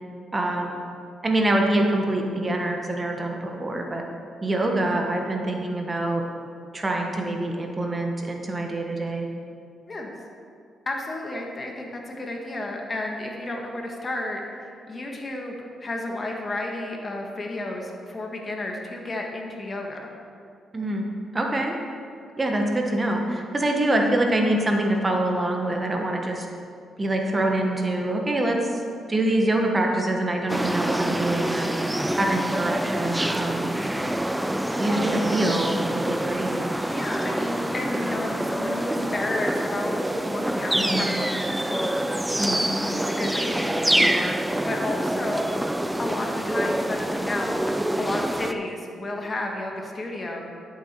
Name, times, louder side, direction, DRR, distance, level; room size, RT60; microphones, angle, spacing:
voice 1, 0.3-0.8 1.2-4.0 4.4-6.2 6.7-9.3 20.7-21.0 21.3-21.7 22.4-26.5 27.0-28.8 29.1-31.7 32.2-33.7 34.8-36.6 40.8-41.1 42.4-42.6, right 1 dB, 25° right, 2 dB, 1.3 m, -25 dB
voice 2, 10.9-15.6 15.8-20.1 34.8-35.1 36.9-40.0 40.3-41.3 41.5-42.0 43.0-45.5 46.0-47.7 48.0-50.4, left 2 dB, 35° left, 1 dB, 1.6 m, -32 dB
sound 1, 30.5-48.5, right 1 dB, 10° right, 0.5 m, -26 dB
12.0 x 7.2 x 4.5 m, 2.4 s
cardioid pair, 75°, 0 cm